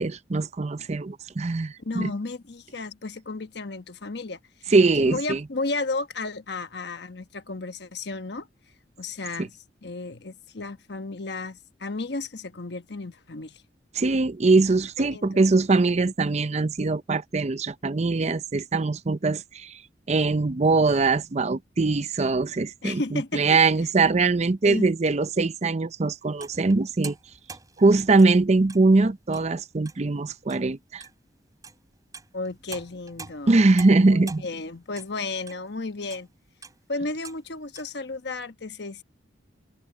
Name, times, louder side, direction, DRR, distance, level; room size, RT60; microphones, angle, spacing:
voice 1, 0.0-2.1 4.7-5.4 9.4-9.5 13.9-19.8 20.1-27.1 27.8-31.0 33.5-34.4, right 3 dB, 40° right, 0.6 m, -22 dB
voice 2, 1.8-8.5 9.0-9.5 9.8-13.6 15.0-15.4 22.8-23.6 24.6-24.9 32.3-33.7 34.1-36.3 36.9-39.0, left 3 dB, 65° left, 1.2 m, -33 dB
sound 1, 26.0-28.9 29.2-29.5 29.8-30.2 30.5-30.7 31.0-31.1 31.6-35.7 36.1-36.3 36.6-36.9 37.2-37.4 37.8-37.9 38.4-38.5, right 4 dB, 20° right, 4.4 m, -45 dB
open air
head